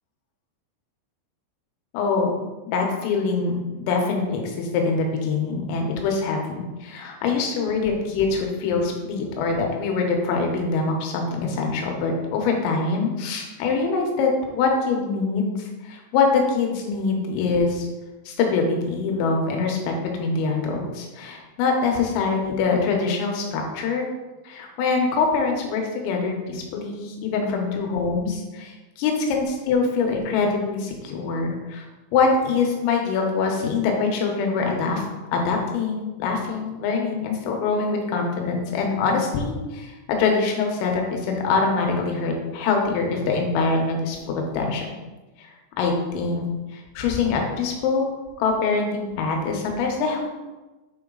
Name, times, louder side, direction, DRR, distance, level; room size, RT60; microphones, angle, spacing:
voice 1, 1.9-2.4 2.7-17.9 18.3-24.1 24.5-31.9 32.1-35.1 35.3-44.9 45.4-46.5 46.7-48.1 48.4-50.3, left 4 dB, 90° left, 1 dB, 3.7 m, -24 dB
8.8 x 3.9 x 3.8 m, 1.1 s
omnidirectional pair, 5.8 m